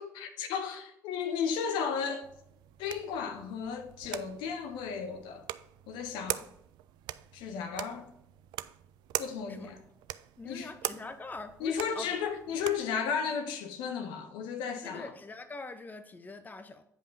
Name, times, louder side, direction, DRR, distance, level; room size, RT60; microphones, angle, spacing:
voice 1, 0.0-2.3 2.8-5.5 5.9-6.5 7.3-8.1 9.2-9.8 10.4-10.7 11.6-15.1, left 6 dB, 65° left, 1.0 m, -34 dB
sound 1, 2.2-13.0, right 14 dB, 55° right, 0.4 m, -42 dB
voice 2, 10.4-12.2 14.8-16.8, left 3 dB, 20° left, 0.7 m, -44 dB
8.9 x 5.4 x 4.0 m
figure-of-eight pair, 50°, 9 cm